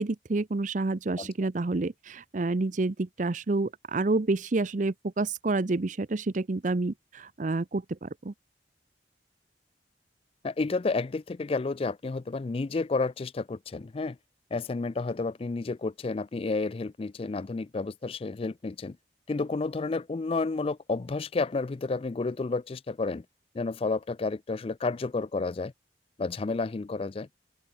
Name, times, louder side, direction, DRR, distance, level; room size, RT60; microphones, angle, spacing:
voice 1, 0.0-8.3, right 3 dB, 45° right, 0.6 m, -29 dB
voice 2, 10.4-14.2 14.5-19.0 19.3-23.2 23.5-25.7 26.2-27.3, left 3 dB, 30° left, 0.4 m, -31 dB
open air
head